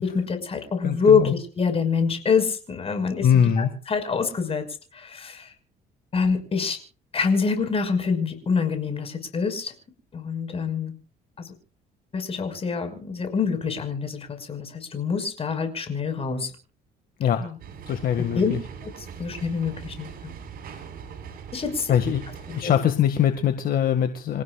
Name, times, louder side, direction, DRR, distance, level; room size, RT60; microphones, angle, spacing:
voice 1, 0.0-4.7 4.9-5.5 6.1-6.8 7.1-9.7 10.1-10.9 11.4-11.5 12.1-16.5 17.4-17.5 18.3-18.5 18.8-18.9 19.2-20.3 21.5-21.9 22.5-22.7, left 5 dB, 35° left, 7 dB, 5.7 m, -25 dB
voice 2, 0.8-1.3 3.2-3.7 17.2-17.4 17.9-18.6 21.9-22.2 22.6-24.4, left 9 dB, 60° left, 7 dB, 2.1 m, -22 dB
sound 1, 17.6-22.6, right 7 dB, 60° right, 7.5 m, -41 dB
28.5 x 16.0 x 2.5 m, 0.40 s
cardioid pair, 110°, 17 cm